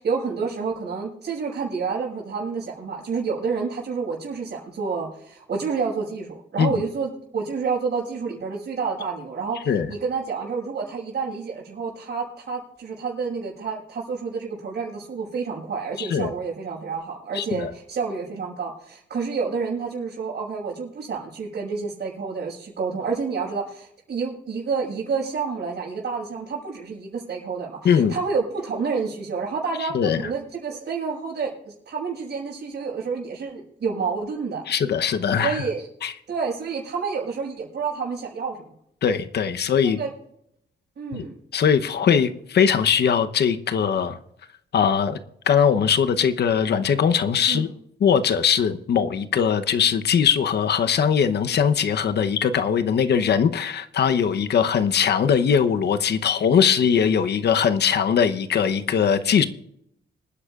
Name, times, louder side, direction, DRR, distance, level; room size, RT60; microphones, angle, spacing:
voice 1, 0.0-34.7 35.4-35.9 36.3-38.6 39.8-40.1 41.0-41.4 47.5-47.7, right 5 dB, 65° right, -6 dB, 5.6 m, -29 dB
voice 2, 16.0-16.3 17.3-17.7 27.8-28.1 29.8-30.2 34.7-35.6 36.0-36.1 39.0-40.0 41.1-41.2 41.5-44.2 44.7-45.2 45.5-47.7 48.0-59.4, left 7 dB, 65° left, 10 dB, 0.9 m, -21 dB
26.0 x 9.8 x 2.5 m, 0.75 s
cardioid pair, 110°, 18 cm